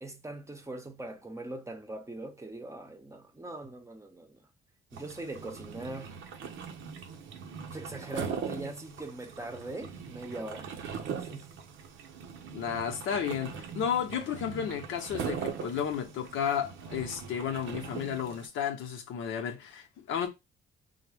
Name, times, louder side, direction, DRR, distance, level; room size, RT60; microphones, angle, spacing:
voice 1, 0.0-4.4 4.9-6.2 7.7-11.6, right 2 dB, 15° right, 0.7 m, -41 dB
sound 1, 4.9-18.5, right 7 dB, 75° right, 0.6 m, -41 dB
voice 2, 12.5-20.3, left 8 dB, 85° left, 0.8 m, -33 dB
3.5 x 2.1 x 3.3 m
cardioid pair, 90°, 20 cm